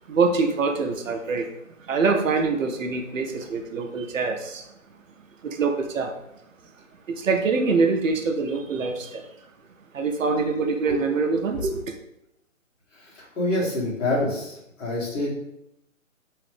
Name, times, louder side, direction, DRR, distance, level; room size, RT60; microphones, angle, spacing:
voice 1, 0.1-4.7 5.4-6.1 7.1-9.3 9.9-11.9, right 4 dB, 70° right, 0.6 m, -24 dB
voice 2, 13.0-15.3, left 1 dB, 65° left, 1.5 m, -27 dB
3.1 x 2.0 x 3.1 m
hypercardioid pair, 165°, 41 cm